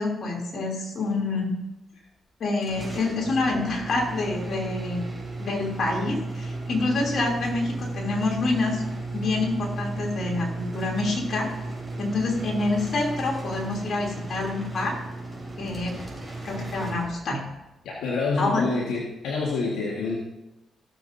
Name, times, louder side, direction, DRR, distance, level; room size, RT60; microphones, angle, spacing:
voice 1, 0.0-1.5 2.4-5.0 5.4-8.8 9.1-11.5 12.0-14.9 15.6-16.0 16.4-17.5 18.4-18.6, left 3 dB, 60° left, -1 dB, 3.1 m, -27 dB
sound 1, 2.6-17.6, right 2 dB, 10° right, 3.7 m, -34 dB
voice 2, 17.8-20.1, left 3 dB, 85° left, -3 dB, 1.6 m, -27 dB
16.5 x 7.1 x 2.7 m, 0.95 s
cardioid pair, 70°, 0 cm